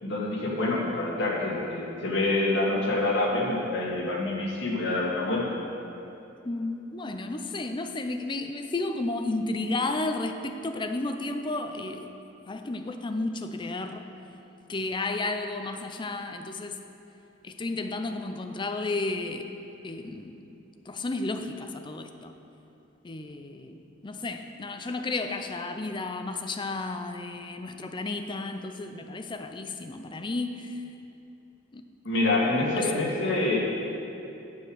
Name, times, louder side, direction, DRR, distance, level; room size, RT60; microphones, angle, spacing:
voice 1, 0.0-5.4 32.1-33.7, left 2 dB, 65° left, -4 dB, 1.9 m, -26 dB
voice 2, 6.4-12.1 12.5-14.0 14.7-16.8 17.4-19.5 19.8-20.4 20.9-22.3 23.0-30.8 31.7-31.8 32.7-32.9, left 2 dB, 25° left, 6 dB, 0.5 m, -32 dB
7.9 x 7.1 x 6.3 m, 2.8 s
head